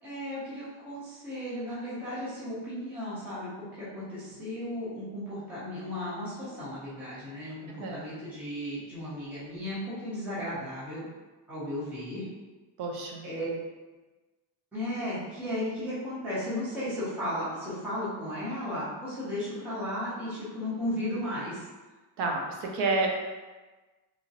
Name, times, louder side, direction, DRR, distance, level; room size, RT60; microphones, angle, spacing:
voice 1, 0.0-11.0 11.5-12.2 13.2-13.5 14.7-21.6, left 1 dB, 5° right, -10 dB, 0.3 m, -35 dB
voice 2, 7.7-8.1 12.8-13.2 22.2-23.1, right 3 dB, 55° right, 1 dB, 0.5 m, -29 dB
2.9 x 2.4 x 2.6 m, 1.2 s
cardioid pair, 180°, 49 cm